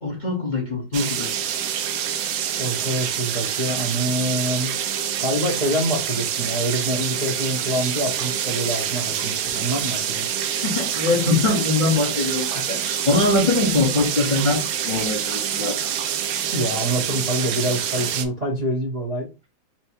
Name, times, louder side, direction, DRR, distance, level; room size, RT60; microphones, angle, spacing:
voice 1, 0.0-1.5 10.6-15.8, left 3 dB, 35° left, 0.8 m, -22 dB
sound 1, 0.9-18.3, right 9 dB, 70° right, 1.2 m, -26 dB
voice 2, 2.6-4.7 5.2-10.3 16.5-19.3, right 1 dB, 35° right, 0.7 m, -26 dB
4.3 x 2.1 x 4.4 m
omnidirectional pair, 2.2 m